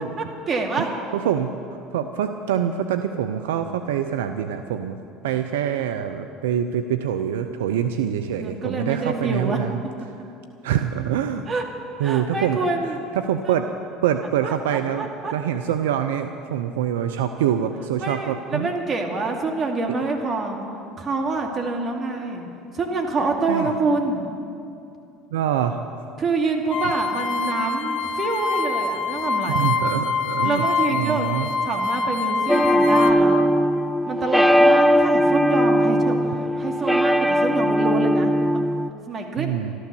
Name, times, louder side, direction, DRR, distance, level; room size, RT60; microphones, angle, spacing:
voice 1, 0.2-0.9 8.4-9.6 11.5-11.6 12.0-13.0 13.5-13.6 14.4-15.3 18.0-20.6 21.0-22.4 22.7-24.2 26.2-29.7 30.4-31.3 31.7-33.4 34.0-36.2 36.6-38.6 39.1-39.5, right 3 dB, 35° right, 1 dB, 2.4 m, -26 dB
voice 2, 0.8-5.0 5.2-9.8 10.6-11.4 12.0-13.7 14.0-18.7 23.5-23.8 25.3-26.0 29.5-30.6 30.9-31.5 39.4-39.7, right 9 dB, 80° right, 8 dB, 0.5 m, -25 dB
sound 1, 26.7-33.1, left 4 dB, 60° left, 0.7 m, -25 dB
sound 2, 32.5-38.9, equal, 5° left, 0.5 m, -19 dB
13.0 x 13.0 x 6.9 m, 2.6 s
hypercardioid pair, 75°, 0 cm